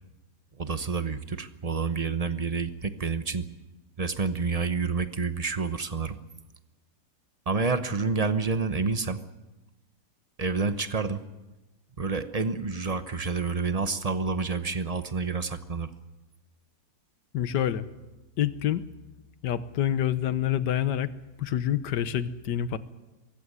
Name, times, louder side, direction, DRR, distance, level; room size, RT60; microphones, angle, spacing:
voice 1, 0.6-3.5 4.0-6.2 7.5-9.2 10.4-11.2 12.0-15.9, right 4 dB, 30° right, 11 dB, 0.7 m, -28 dB
voice 2, 17.3-17.9 18.4-18.8 19.4-21.1 21.4-22.8, left 10 dB, 80° left, 14 dB, 1.6 m, -27 dB
23.5 x 15.5 x 9.9 m, 1.1 s
omnidirectional pair, 1.9 m